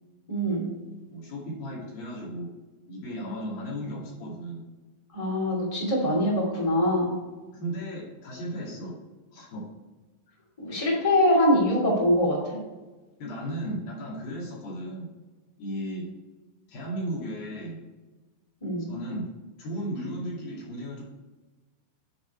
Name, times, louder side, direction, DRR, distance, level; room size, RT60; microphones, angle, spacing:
voice 1, 0.3-0.7 5.1-7.1 10.6-12.6 18.6-18.9, left 1 dB, 15° left, -5 dB, 1.2 m, -23 dB
voice 2, 1.1-2.5 2.9-4.7 7.5-9.0 9.3-9.7 13.2-15.1 15.6-16.1 16.7-17.8 18.9-19.3 19.6-21.0, equal, 55° left, -5 dB, 3.9 m, -35 dB
10.5 x 4.6 x 4.6 m, 1.2 s
omnidirectional pair, 5.5 m